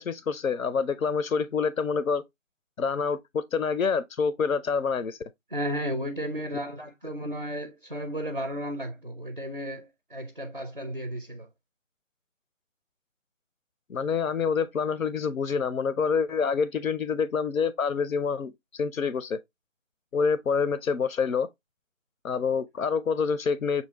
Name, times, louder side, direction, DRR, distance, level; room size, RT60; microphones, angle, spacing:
voice 1, 0.0-2.2 2.8-5.2 13.9-19.4 20.1-21.5 22.2-23.8, left 5 dB, 90° left, 0.5 m, -27 dB
voice 2, 5.5-11.5, equal, 40° right, 0.4 m, -34 dB
6.2 x 2.7 x 2.8 m
figure-of-eight pair, 160°, 40 cm